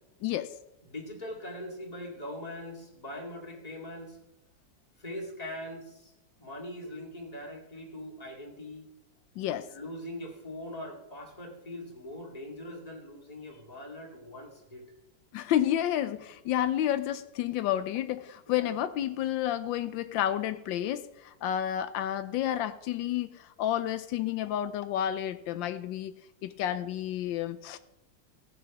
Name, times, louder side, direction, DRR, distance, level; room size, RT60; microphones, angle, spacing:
voice 1, 0.2-0.5 9.4-9.7 15.3-27.8, left 11 dB, 90° left, 12 dB, 1.3 m, -30 dB
voice 2, 0.8-4.2 5.0-6.1 6.4-8.9 9.7-14.9 18.5-18.7, left 1 dB, 20° left, 0 dB, 2.2 m, -41 dB
16.5 x 6.9 x 5.9 m, 0.90 s
omnidirectional pair, 2.0 m